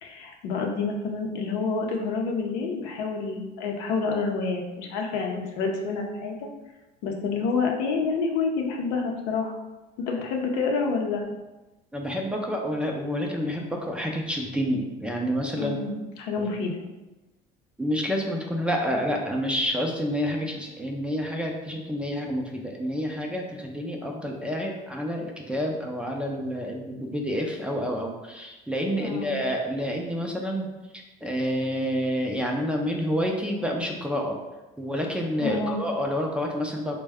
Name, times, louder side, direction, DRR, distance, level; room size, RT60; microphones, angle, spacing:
voice 1, 0.0-6.5 7.0-9.6 10.0-11.3 15.6-16.8 29.0-29.4 35.4-35.8, left 4 dB, 90° left, 2 dB, 0.6 m, -28 dB
voice 2, 11.9-15.8 16.4-16.5 17.8-30.7 30.9-34.4 34.8-37.0, equal, 5° right, 0 dB, 0.4 m, -28 dB
3.3 x 2.1 x 3.4 m, 1.1 s
supercardioid pair, 110°, 21 cm